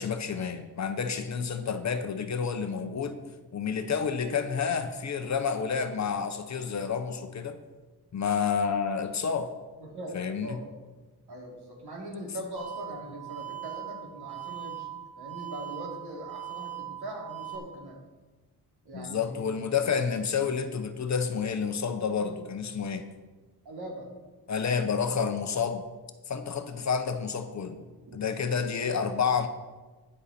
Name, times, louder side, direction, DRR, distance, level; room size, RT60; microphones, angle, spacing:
voice 1, 0.0-3.2 3.5-7.6 8.1-9.5 10.1-10.6 18.9-23.1 24.5-25.9 26.3-27.8 28.1-29.5, left 6 dB, 45° left, 8 dB, 0.8 m, -29 dB
voice 2, 9.8-10.6 11.3-18.0 18.8-19.7 23.6-24.1 28.8-28.9, right 1 dB, 75° right, -1 dB, 3.0 m, -41 dB
sound 1, 12.6-17.6, right 12 dB, 55° right, 2.4 m, -40 dB
13.0 x 9.8 x 4.3 m, 1.3 s
wide cardioid pair, 175°, 39 cm